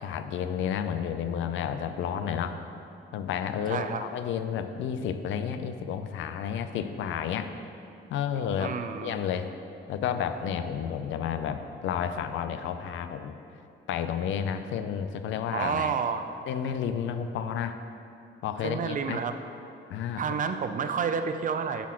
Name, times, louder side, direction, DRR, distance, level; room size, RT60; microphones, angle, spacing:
voice 1, 0.0-2.6 3.1-7.5 8.1-9.5 9.9-13.3 13.9-15.9 16.5-17.8 18.4-19.2 19.9-20.2, left 8 dB, 75° left, 9 dB, 0.4 m, -31 dB
voice 2, 3.7-4.0 8.6-9.2 15.5-16.3 18.6-19.3 20.2-21.9, right 6 dB, 40° right, 9 dB, 0.4 m, -30 dB
7.1 x 4.1 x 4.3 m, 2.6 s
cardioid pair, 90°, 20 cm